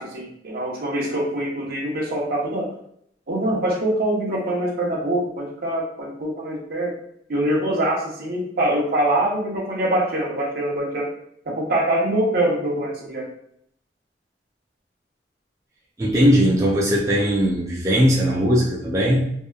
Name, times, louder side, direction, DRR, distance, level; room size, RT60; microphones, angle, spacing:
voice 1, 0.0-2.7 3.3-6.9 7.3-11.1 11.4-13.3, right 1 dB, 60° right, -3 dB, 0.7 m, -24 dB
voice 2, 16.0-19.2, equal, 20° right, -6 dB, 0.4 m, -19 dB
2.8 x 2.2 x 2.3 m, 0.70 s
head